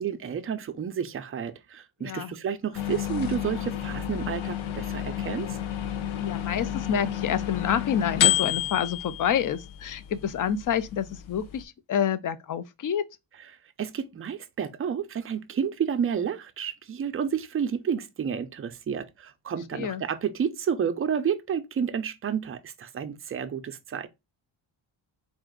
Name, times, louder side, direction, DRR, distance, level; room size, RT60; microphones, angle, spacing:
voice 1, 0.0-5.6 13.4-13.5 13.8-24.1, right 7 dB, 30° right, 0.4 m, -30 dB
voice 2, 2.0-2.3 6.1-13.0 19.7-20.0, left 8 dB, 45° left, 0.5 m, -28 dB
sound 1, 2.7-11.6, left 12 dB, 80° left, 0.7 m, -30 dB
3.9 x 2.5 x 3.6 m
cardioid pair, 100°, 47 cm